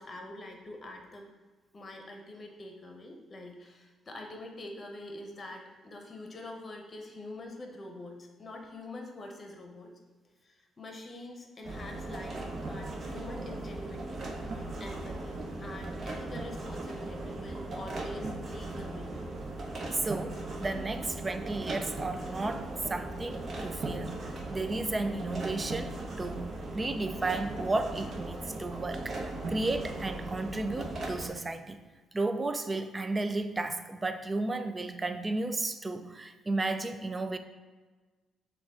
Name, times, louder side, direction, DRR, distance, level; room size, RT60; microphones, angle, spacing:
voice 1, 0.0-1.3 1.7-9.9 10.4-19.1, left 1 dB, 35° left, 2 dB, 0.8 m, -45 dB
sound 1, 11.6-31.3, right 2 dB, 50° right, 0.9 m, -38 dB
voice 2, 19.9-31.8 32.1-37.4, right 2 dB, 25° right, 9 dB, 0.4 m, -33 dB
6.1 x 2.3 x 3.7 m, 1.3 s
cardioid pair, 90°, 0 cm